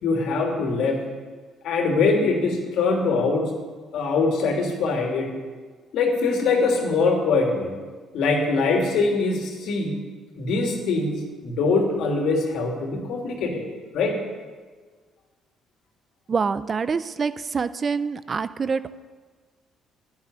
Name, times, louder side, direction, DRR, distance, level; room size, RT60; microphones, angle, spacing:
voice 1, 0.0-1.0 1.6-3.5 3.9-5.3 5.9-7.7 8.1-10.0 10.4-13.6 13.9-14.2, left 3 dB, 75° left, 1 dB, 3.1 m, -23 dB
voice 2, 16.3-18.9, right 5 dB, 40° right, 14 dB, 0.6 m, -26 dB
11.5 x 10.0 x 9.7 m, 1.5 s
supercardioid pair, 70°, 0 cm